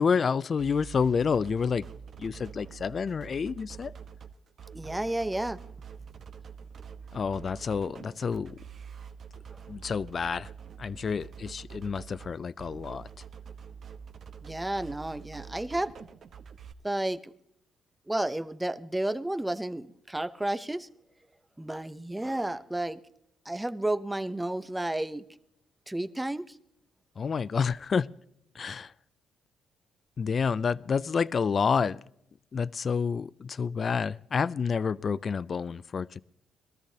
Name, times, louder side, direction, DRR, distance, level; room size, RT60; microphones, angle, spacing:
voice 1, 0.0-1.9 2.2-3.9 7.1-8.5 9.7-10.5 10.8-13.1 27.2-28.1 28.6-28.9 30.2-32.0 32.5-36.2, left 6 dB, 45° left, 0.4 m, -29 dB
sound 1, 0.6-16.7, right 7 dB, 55° right, 1.1 m, -46 dB
voice 2, 4.7-5.6 9.5-9.6 14.4-15.9 16.8-17.3 18.1-20.9 21.6-23.0 23.4-25.2 25.9-26.5, right 1 dB, 10° right, 0.8 m, -31 dB
22.0 x 13.5 x 2.8 m
cardioid pair, 90°, 0 cm